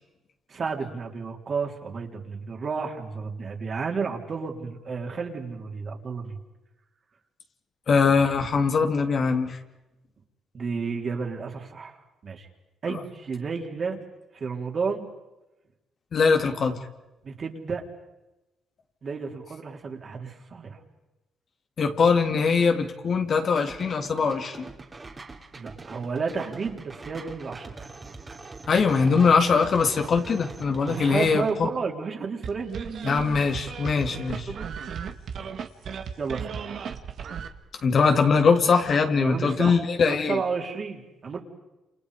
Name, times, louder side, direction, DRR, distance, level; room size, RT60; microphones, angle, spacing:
voice 1, 0.5-6.4 10.5-12.0 12.2-12.5 12.8-14.0 14.3-15.1 17.2-17.9 19.0-20.8 25.5-27.8 30.9-33.4 33.8-34.2 34.5-34.7 36.2-36.5 39.2-39.8 40.1-41.4, right 5 dB, 45° right, 2 dB, 3.8 m, -32 dB
voice 2, 7.9-9.6 12.9-13.0 16.1-16.8 21.8-24.6 28.7-31.7 33.0-34.5 37.8-40.4, left 5 dB, 50° left, 5 dB, 2.7 m, -22 dB
sound 1, 23.5-31.5, right 3 dB, 25° right, 3.0 m, -43 dB
sound 2, 32.4-37.5, right 7 dB, 60° right, 1.8 m, -35 dB
29.0 x 28.0 x 5.1 m, 1.0 s
cardioid pair, 90°, 0 cm